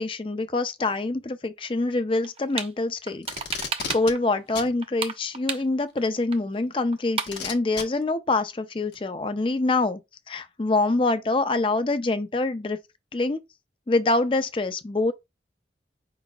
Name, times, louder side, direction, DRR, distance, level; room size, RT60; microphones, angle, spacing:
voice 1, 0.0-3.3 3.9-10.0 10.3-12.8 13.1-13.4 13.9-15.1, left 2 dB, 30° left, 0.4 m, -25 dB
sound 1, 2.2-2.7 3.1-4.2 4.5-6.0 6.3-6.4 6.6-6.7 6.9-7.4, right 6 dB, 30° right, 0.5 m, -32 dB
Packing tape duct tape, 3.2-4.1 4.6-4.7 6.0-6.1 7.3-7.8 8.9-9.0, left 5 dB, 75° left, 1.1 m, -32 dB
5.2 x 4.0 x 2.3 m
head